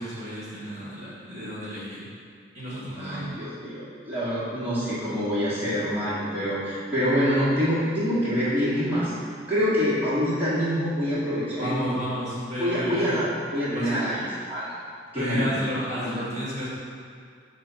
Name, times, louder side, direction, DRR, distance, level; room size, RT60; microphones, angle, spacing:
voice 1, 0.0-2.1 2.5-3.3 11.6-13.1 13.7-14.0 15.1-16.7, equal, 35° right, -8 dB, 1.6 m, -32 dB
voice 2, 3.0-9.1 9.5-11.8 12.6-14.8 15.1-15.7 16.0-16.2, equal, 10° right, -12 dB, 1.6 m, -26 dB
6.5 x 3.3 x 5.6 m, 2.2 s
head